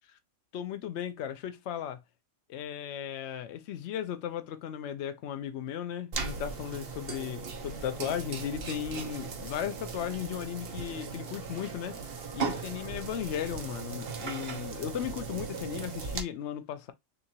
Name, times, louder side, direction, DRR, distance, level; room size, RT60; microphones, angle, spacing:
voice 1, 0.5-2.0 2.5-16.9, left 10 dB, 65° left, 0.9 m, -36 dB
sound 1, 6.1-16.2, right 5 dB, 50° right, 1.0 m, -38 dB
6.5 x 2.5 x 2.8 m
omnidirectional pair, 1.3 m